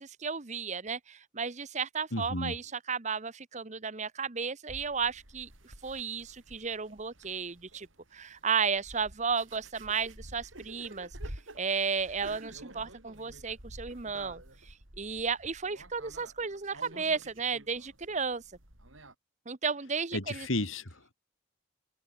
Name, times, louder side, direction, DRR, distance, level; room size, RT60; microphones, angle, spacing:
voice 1, 0.0-18.4 19.5-20.5, right 5 dB, 35° right, 1.0 m, -34 dB
voice 2, 2.1-2.6 20.1-21.1, left 1 dB, 90° left, 4.3 m, -33 dB
sound 1, 4.7-19.1, right 1 dB, 85° right, 7.2 m, -50 dB
head